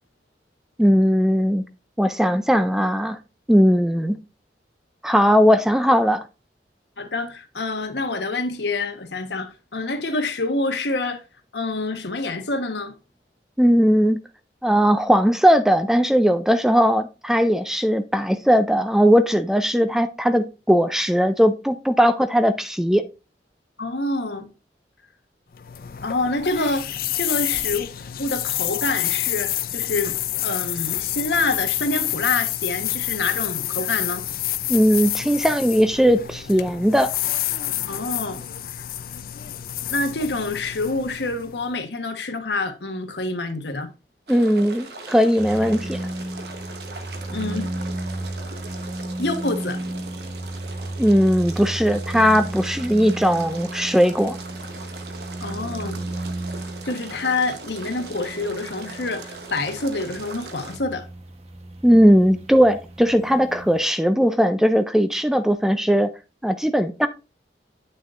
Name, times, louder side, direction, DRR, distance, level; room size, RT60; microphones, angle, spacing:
voice 1, 0.8-1.6 2.0-3.2 3.5-4.2 5.0-6.2 13.6-14.2 14.6-23.0 34.7-37.1 44.3-46.0 51.0-54.4 61.8-66.1 66.4-67.1, equal, 5° right, 0.4 m, -18 dB
voice 2, 7.0-11.2 11.5-12.9 23.8-24.5 26.0-26.9 27.2-27.9 28.2-30.2 30.4-34.2 37.9-38.4 39.9-43.9 47.3-47.7 49.2-49.8 55.4-56.0 56.8-61.1, left 2 dB, 80° left, 1.2 m, -27 dB
sound 1, 25.5-41.7, left 13 dB, 55° left, 0.5 m, -28 dB
sound 2, 44.3-60.8, right 3 dB, 65° right, 1.1 m, -40 dB
sound 3, 45.4-63.8, right 1 dB, 35° right, 1.0 m, -34 dB
9.0 x 6.5 x 2.5 m
head